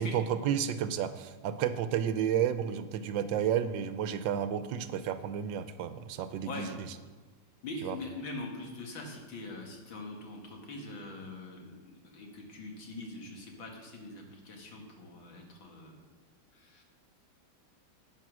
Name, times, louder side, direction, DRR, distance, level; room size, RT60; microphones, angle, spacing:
voice 1, 0.0-6.7 7.8-8.0, right 9 dB, 80° right, 11 dB, 1.4 m, -31 dB
voice 2, 6.4-6.7 7.6-15.9 16.5-16.8, left 2 dB, 80° left, 1 dB, 2.6 m, -43 dB
10.5 x 8.4 x 6.2 m, 1.3 s
omnidirectional pair, 2.1 m